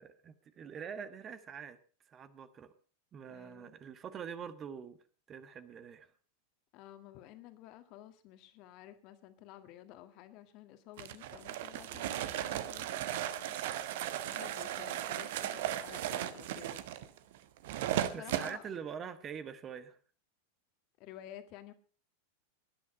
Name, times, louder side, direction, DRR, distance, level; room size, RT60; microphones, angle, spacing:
voice 1, 0.0-1.8 2.1-2.7 3.1-5.0 5.3-6.1 18.1-20.0, right 7 dB, 25° right, 13 dB, 1.3 m, -44 dB
voice 2, 3.3-3.8 6.7-13.9 14.2-16.8 17.9-18.7 21.0-21.7, left 13 dB, 40° left, 9 dB, 1.8 m, -52 dB
sound 1, 11.0-18.6, right 12 dB, 50° right, 1.2 m, -36 dB
19.0 x 11.5 x 5.3 m, 0.41 s
figure-of-eight pair, 90°, 0 cm